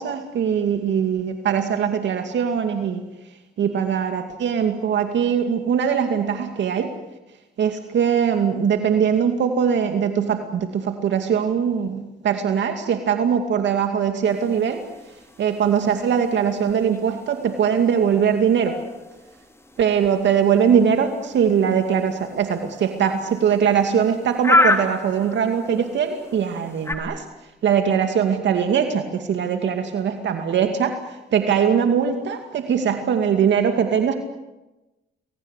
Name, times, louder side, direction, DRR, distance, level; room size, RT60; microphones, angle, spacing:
voice 1, 0.0-3.0 3.6-6.9 7.6-14.8 15.4-18.8 19.8-27.2 27.6-31.0 31.3-34.2, right 7 dB, 65° right, 6 dB, 2.4 m, -21 dB
sound 1, 14.2-26.9, left 1 dB, 15° left, 3.7 m, -30 dB
29.0 x 21.5 x 8.3 m, 1.0 s
cardioid pair, 90°, 20 cm